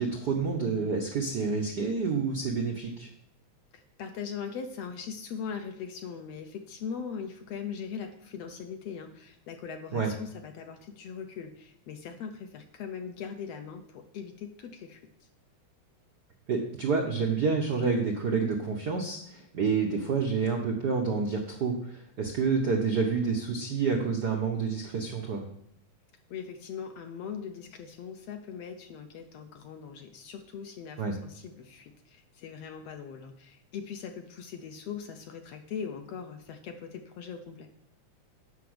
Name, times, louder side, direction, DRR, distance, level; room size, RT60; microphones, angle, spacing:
voice 1, 0.0-3.1 9.9-10.1 16.5-25.4 31.0-31.1, right 5 dB, 75° right, 1 dB, 0.9 m, -28 dB
voice 2, 3.7-15.3 26.3-37.7, left 6 dB, 70° left, 6 dB, 1.6 m, -40 dB
8.4 x 6.0 x 7.9 m, 0.71 s
omnidirectional pair, 3.5 m